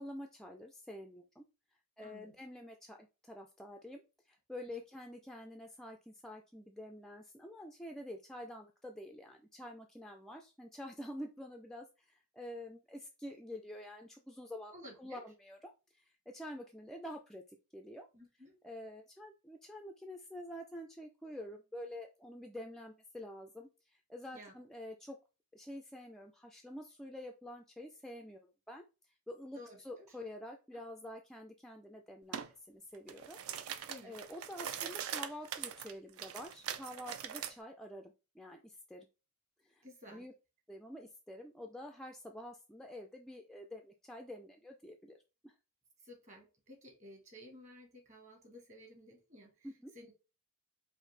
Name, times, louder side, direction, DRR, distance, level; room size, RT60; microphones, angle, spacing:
voice 1, 0.0-1.4 2.0-14.7 15.0-17.4 17.7-18.1 18.6-25.2 25.5-33.4 34.0-39.1 39.6-40.3 40.7-45.2 45.4-45.5 49.6-49.9, left 1 dB, ahead, 2 dB, 0.3 m, -48 dB
voice 2, 2.0-2.3 4.7-4.8 14.7-15.3 18.1-18.5 24.3-24.5 29.5-29.8 33.9-34.1 39.8-40.3 46.0-49.7 49.9-50.1, left 1 dB, 35° right, 2 dB, 1.4 m, -54 dB
sound 1, 32.3-32.5 32.9-37.5, right 9 dB, 65° right, 0.4 m, -42 dB
4.9 x 2.6 x 3.2 m, 0.30 s
head